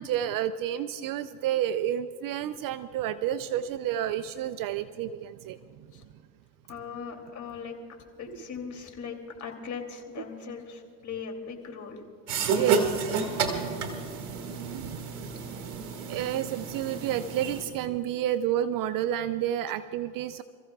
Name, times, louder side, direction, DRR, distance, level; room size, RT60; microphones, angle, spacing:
voice 1, 0.0-5.9 8.3-8.4 10.2-10.3 12.5-13.1 13.4-14.2 14.7-15.0 16.1-20.4, right 11 dB, 45° right, 13 dB, 0.6 m, -30 dB
voice 2, 6.7-7.8 8.2-12.0, left 6 dB, 40° left, 3 dB, 3.0 m, -39 dB
sound 1, 12.3-17.6, right 5 dB, 85° right, 2.1 m, -30 dB
28.0 x 15.0 x 2.4 m, 2.2 s
hypercardioid pair, 80°, 46 cm